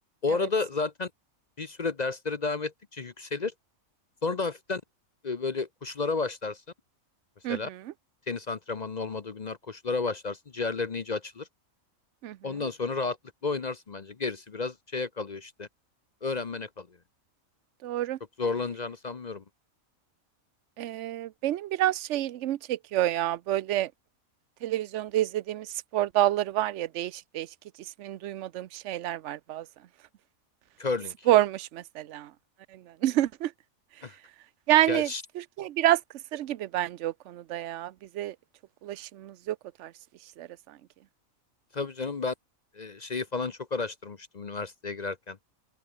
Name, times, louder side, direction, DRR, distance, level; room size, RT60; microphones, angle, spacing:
voice 1, 0.2-1.1 1.6-3.5 4.2-4.8 5.2-6.6 7.5-7.7 8.3-11.5 12.4-13.2 13.4-15.7 16.2-16.9 18.4-19.4 30.8-31.3 34.0-34.2 34.9-35.2 41.7-42.3 42.7-45.4, left 4 dB, 35° left, 0.8 m, -32 dB
voice 2, 7.4-7.8 12.2-12.4 17.8-18.2 20.8-23.9 24.6-27.5 28.0-29.7 31.3-32.3 32.7-33.5 34.7-35.1 35.4-36.0 36.3-38.3 38.8-39.9 40.4-40.8, right 13 dB, 65° right, 0.9 m, -28 dB
open air
omnidirectional pair, 1.5 m